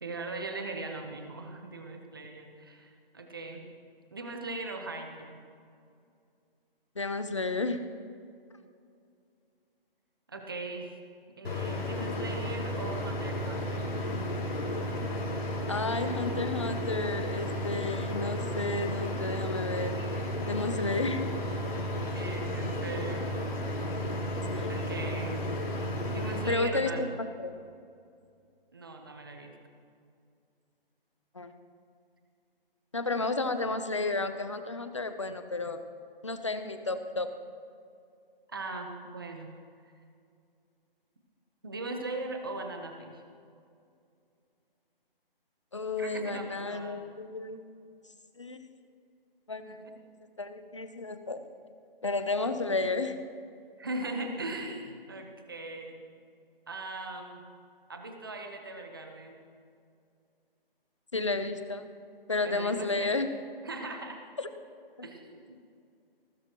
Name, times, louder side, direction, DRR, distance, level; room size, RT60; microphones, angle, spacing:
voice 1, 0.0-3.6 4.1-5.4 10.3-10.9 11.4-13.9 22.1-23.3 24.7-25.5 26.1-27.0 28.7-29.6 38.5-39.5 41.6-43.2 46.0-47.0 49.7-49.8 53.8-56.0 56.7-57.4 57.9-59.4 62.4-63.2 63.6-64.2 65.0-65.7, right 2 dB, 25° right, 4 dB, 1.0 m, -39 dB
voice 2, 7.0-7.8 15.7-20.0 20.5-21.3 24.5-24.7 26.5-26.9 27.4-27.5 31.3-31.5 32.9-35.8 36.2-37.3 45.7-47.6 48.4-48.6 49.5-49.8 50.4-51.5 52.0-53.1 61.1-61.9 62.3-63.3 65.0-65.1, left 3 dB, 30° left, 9 dB, 0.7 m, -32 dB
sound 1, 11.4-26.5, equal, 90° left, 4.5 m, -33 dB
19.5 x 19.0 x 3.0 m, 2.4 s
hypercardioid pair, 180°, 30 cm